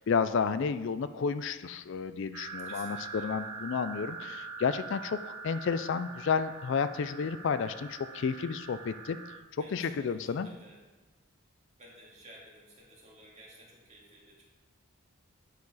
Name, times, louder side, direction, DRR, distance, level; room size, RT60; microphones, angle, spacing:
voice 1, 0.0-9.2 9.7-10.5, left 6 dB, 55° left, 12 dB, 0.3 m, -31 dB
sound 1, 2.3-9.4, right 4 dB, 85° right, 0.9 m, -43 dB
voice 2, 2.6-3.3 9.6-10.8 11.8-14.5, right 1 dB, 30° right, -4 dB, 2.0 m, -54 dB
10.5 x 4.8 x 4.8 m, 1.3 s
head